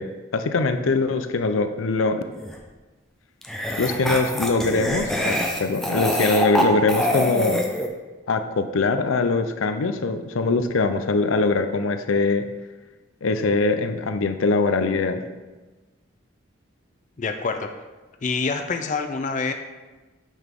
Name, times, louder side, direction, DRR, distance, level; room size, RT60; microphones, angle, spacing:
voice 1, 0.0-2.2 3.8-7.6 8.3-12.5 13.2-15.2, left 3 dB, 80° left, 8 dB, 0.6 m, -22 dB
sound 1, 2.4-2.5 3.4-7.9, equal, ahead, 0.7 m, -25 dB
voice 2, 17.2-17.7 18.2-19.5, left 4 dB, 35° left, 6 dB, 0.4 m, -26 dB
9.1 x 5.9 x 3.6 m, 1.2 s
head